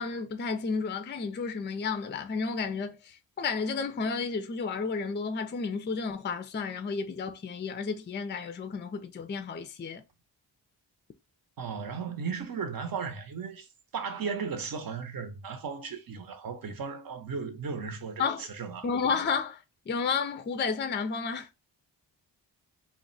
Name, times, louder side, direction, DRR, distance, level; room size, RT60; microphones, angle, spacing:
voice 1, 0.0-10.0 18.2-18.5 18.8-21.5, left 5 dB, 25° left, 0.4 m, -32 dB
voice 2, 11.6-18.9, right 5 dB, 55° right, 0.8 m, -36 dB
2.3 x 2.2 x 3.9 m
cardioid pair, 60°, 42 cm